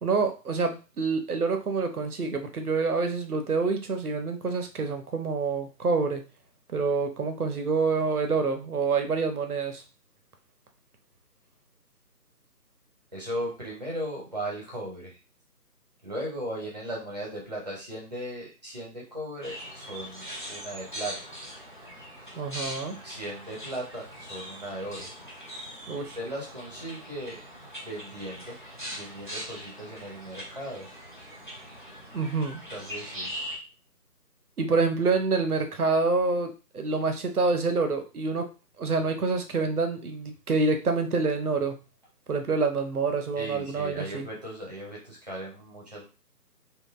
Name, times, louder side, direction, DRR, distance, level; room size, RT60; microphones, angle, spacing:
voice 1, 0.0-6.2 6.7-9.8 22.4-23.0 25.9-26.2 32.1-32.6 34.6-38.5 38.8-41.8 42.3-44.3, right 4 dB, 65° right, 6 dB, 0.8 m, -27 dB
voice 2, 13.1-15.2 16.0-21.4 23.0-25.1 26.1-27.4 27.8-28.6 28.9-30.9 32.7-33.3 43.4-46.0, right 1 dB, 25° right, -4 dB, 0.9 m, -37 dB
sound 1, 19.4-33.6, equal, 30° left, 0.6 m, -41 dB
3.6 x 2.5 x 2.4 m, 0.31 s
figure-of-eight pair, 160°, 49 cm